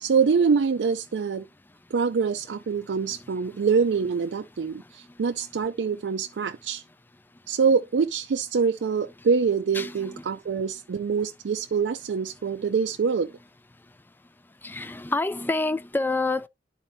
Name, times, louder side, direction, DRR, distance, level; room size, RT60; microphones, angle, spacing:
voice 1, 0.0-1.5 1.9-6.8 7.5-13.3, right 5 dB, 85° right, 0.4 m, -25 dB
voice 2, 9.7-10.1 14.6-16.5, left 2 dB, 10° left, 0.4 m, -27 dB
11.5 x 4.3 x 2.7 m
head